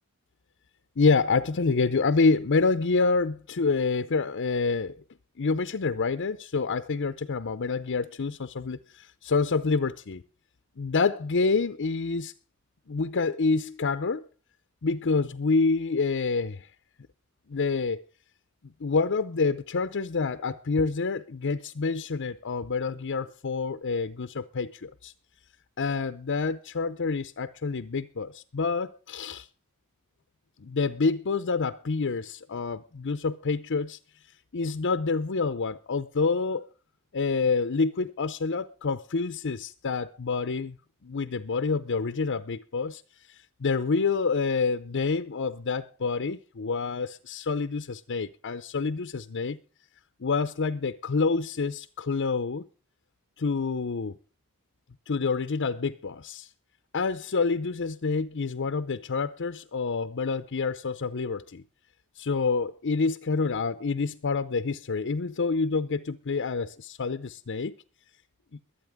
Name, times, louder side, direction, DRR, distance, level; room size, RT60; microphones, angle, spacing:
voice 1, 1.0-5.0 5.4-10.2 10.8-12.3 12.9-14.3 14.8-16.7 17.5-18.0 18.8-25.1 25.8-29.5 30.6-34.0 34.5-36.7 37.1-40.8 41.0-49.6 50.2-52.6 53.4-54.1 55.1-56.5 56.9-61.6 62.2-67.7, left 4 dB, 55° left, 0.6 m, -27 dB
23.0 x 8.7 x 3.6 m
head